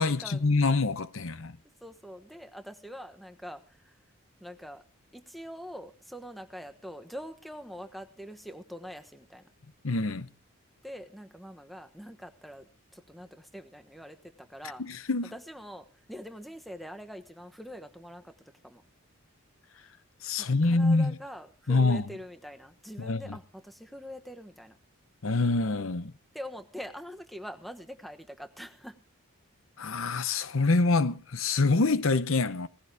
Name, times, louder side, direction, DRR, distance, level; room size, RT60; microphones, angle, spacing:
voice 1, 0.0-1.6 9.8-10.3 14.8-15.3 20.2-21.2 21.7-22.1 23.0-23.4 25.2-26.1 29.8-32.7, left 3 dB, 70° left, 0.8 m, -26 dB
voice 2, 1.8-4.0 4.4-4.8 5.1-9.4 10.8-14.8 15.3-18.8 20.4-24.8 26.3-29.0, equal, ahead, 1.2 m, -44 dB
18.5 x 15.0 x 3.5 m
head